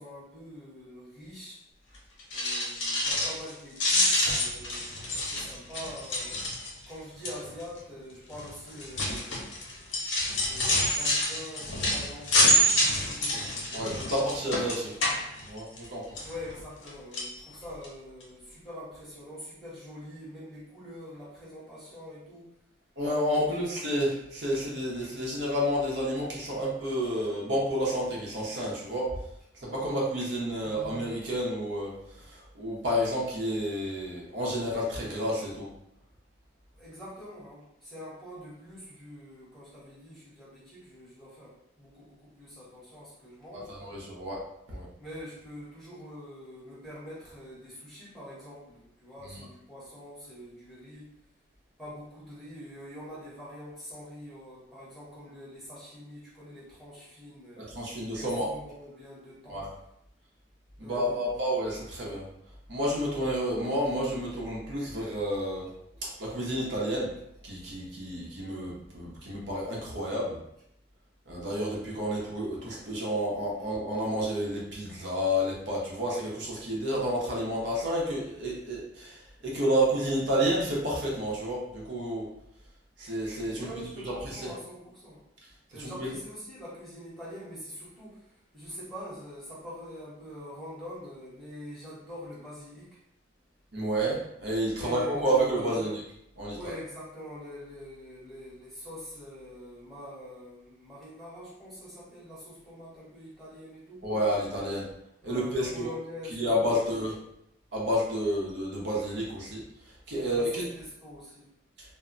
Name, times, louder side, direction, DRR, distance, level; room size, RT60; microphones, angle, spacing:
voice 1, 0.0-1.6 2.3-6.4 6.9-9.9 10.3-14.0 16.2-22.5 23.6-23.7 36.8-43.7 45.0-51.1 51.8-57.7 58.2-59.7 60.8-61.3 83.6-85.2 85.7-93.0 94.8-95.9 96.5-104.1 105.2-106.9 110.2-111.5, equal, ahead, -8 dB, 0.9 m, -45 dB
sound 1, 2.2-3.5 3.8-6.9 7.2-7.6 8.3-15.9 16.2-16.9 17.1-17.3 17.8-17.9 18.2-18.3, left 1 dB, 80° left, 0.8 m, -27 dB
voice 2, 13.7-14.9 15.5-16.2 23.0-29.1 29.6-35.7 43.5-44.4 44.7-44.9 49.2-49.4 57.6-58.5 59.5-59.6 60.8-62.2 62.7-65.7 66.0-67.1 67.4-70.4 71.3-82.3 83.0-83.7 84.3-84.5 85.8-86.1 93.7-96.0 96.4-96.7 104.0-104.8 105.2-105.9 106.3-107.2 107.7-110.6, equal, 60° right, -4 dB, 0.7 m, -30 dB
2.1 x 2.0 x 3.7 m, 0.78 s
head